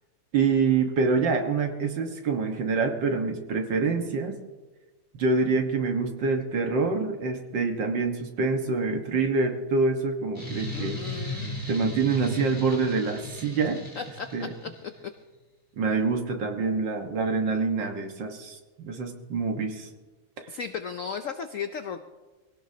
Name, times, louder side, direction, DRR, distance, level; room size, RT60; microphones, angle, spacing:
voice 1, 0.3-4.4 5.1-11.0 11.2-11.4 11.7-13.8 14.3-14.5 15.8-19.9, right 4 dB, 65° right, 4 dB, 2.1 m, -26 dB
sound 1, 10.3-14.8, left 1 dB, 10° left, 3.9 m, -36 dB
voice 2, 10.7-11.6 14.0-15.1 20.5-22.1, left 6 dB, 70° left, 8 dB, 0.7 m, -36 dB
23.5 x 17.0 x 2.8 m, 1.2 s
omnidirectional pair, 2.2 m